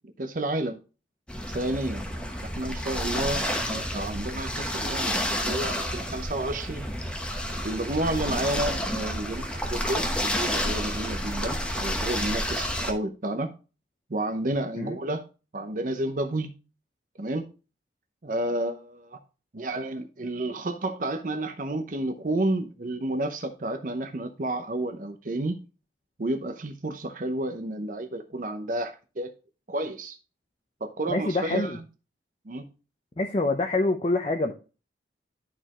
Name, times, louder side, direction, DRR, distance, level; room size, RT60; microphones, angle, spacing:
voice 1, 0.2-0.8 1.5-2.1 2.6-6.9 7.6-13.5 14.1-15.3 15.5-16.5 17.2-17.5 18.2-19.2 19.5-25.6 26.2-29.3 29.7-30.2 30.8-31.8 32.5-32.7, right 1 dB, 50° right, 0.7 m, -31 dB
sound 1, 1.3-12.9, equal, 5° left, 0.9 m, -30 dB
voice 2, 31.1-31.8 33.2-34.5, left 2 dB, 35° left, 0.6 m, -26 dB
11.5 x 4.3 x 2.9 m
head